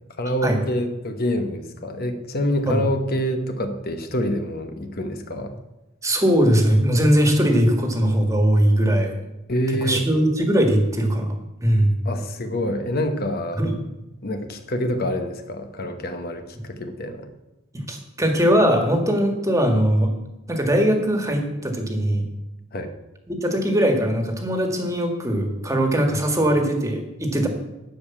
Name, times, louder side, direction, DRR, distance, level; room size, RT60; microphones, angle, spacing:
voice 1, 0.2-5.5 9.5-10.0 12.0-13.7 14.2-17.3 22.7-22.9, equal, 50° left, 7 dB, 1.0 m, -26 dB
voice 2, 6.0-9.1 9.8-11.3 11.6-12.0 13.6-13.7 17.7-20.1 20.5-22.3 23.3-27.5, equal, 15° right, 4 dB, 1.7 m, -20 dB
13.0 x 5.0 x 8.6 m, 0.98 s
head